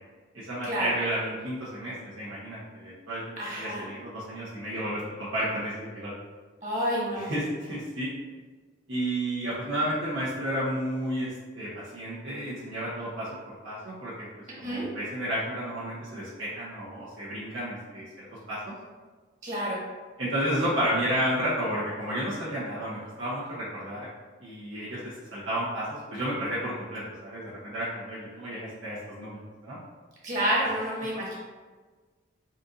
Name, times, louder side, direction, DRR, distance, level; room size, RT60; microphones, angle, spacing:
voice 1, 0.3-3.2 3.5-6.1 7.1-7.4 7.7-8.1 8.9-11.3 11.5-14.3 14.6-18.0 18.5-18.6 20.2-24.0 24.4-25.0 25.3-25.8 26.1-29.8, right 1 dB, 90° right, -11 dB, 1.2 m, -32 dB
voice 2, 3.4-3.8 6.6-7.3 14.6-14.8 19.4-19.8 30.2-31.4, equal, 40° right, -6 dB, 1.2 m, -29 dB
4.3 x 2.7 x 3.9 m, 1.4 s
head